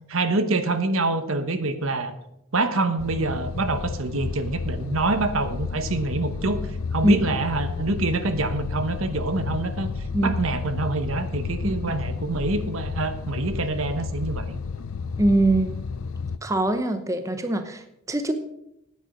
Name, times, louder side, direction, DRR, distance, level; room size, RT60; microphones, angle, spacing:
voice 1, 0.1-2.1 2.5-6.6 6.9-9.9 10.2-14.6, right 2 dB, 75° right, 10 dB, 1.1 m, -26 dB
sound 1, 3.0-16.4, left 4 dB, 90° left, 0.5 m, -31 dB
voice 2, 15.2-15.7 16.4-18.3, right 1 dB, 15° right, 8 dB, 0.8 m, -22 dB
10.0 x 8.5 x 6.6 m, 0.82 s
head